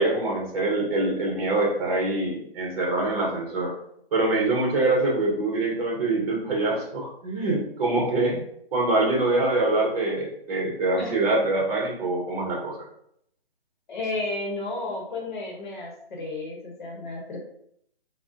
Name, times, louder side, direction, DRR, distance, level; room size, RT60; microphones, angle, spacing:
voice 1, 0.0-3.7 4.1-8.4 8.7-12.7, right 2 dB, 40° right, -2 dB, 0.8 m, -24 dB
voice 2, 13.9-17.4, left 2 dB, 50° left, -1 dB, 0.9 m, -32 dB
3.6 x 2.1 x 2.5 m, 0.71 s
figure-of-eight pair, 140°, 30 cm